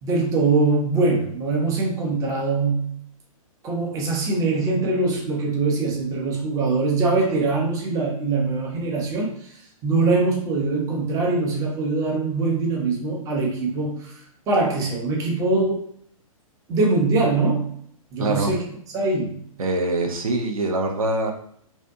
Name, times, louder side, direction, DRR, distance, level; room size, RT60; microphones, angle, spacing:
voice 1, 0.0-2.9 3.6-9.5 9.8-14.2 14.5-15.8 16.7-17.7 18.1-18.6 18.9-19.4, right 3 dB, 20° right, -1 dB, 0.6 m, -22 dB
voice 2, 18.2-18.5 19.6-21.3, right 2 dB, 70° right, 2 dB, 0.6 m, -24 dB
2.6 x 2.1 x 2.6 m, 0.66 s
figure-of-eight pair, 120°, 18 cm